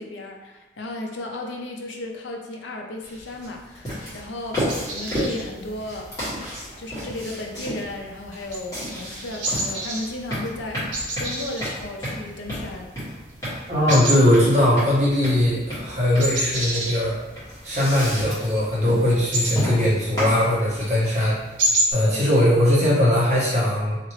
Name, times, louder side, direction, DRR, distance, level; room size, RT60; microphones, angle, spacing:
voice 1, 0.0-6.4 6.8-13.0 22.1-22.3, left 2 dB, 80° left, 2 dB, 0.5 m, -34 dB
sound 1, 3.0-21.1, equal, 15° left, 1.5 m, -32 dB
sound 2, 4.5-21.9, right 1 dB, 90° right, 0.8 m, -31 dB
voice 2, 13.7-17.2 17.6-21.4 21.9-24.0, left 1 dB, 40° right, -8 dB, 1.3 m, -20 dB
2.9 x 2.8 x 2.9 m, 1.2 s
head